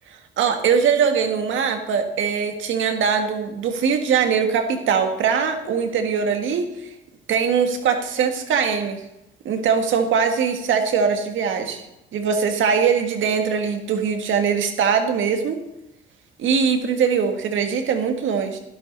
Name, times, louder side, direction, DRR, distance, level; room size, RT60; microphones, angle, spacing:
voice 1, 0.4-6.9 7.3-9.0 9.5-11.8 12.1-15.6 16.4-18.6, right 6 dB, 75° right, 5 dB, 1.7 m, -21 dB
12.0 x 11.5 x 4.0 m, 0.91 s
cardioid pair, 90°, 20 cm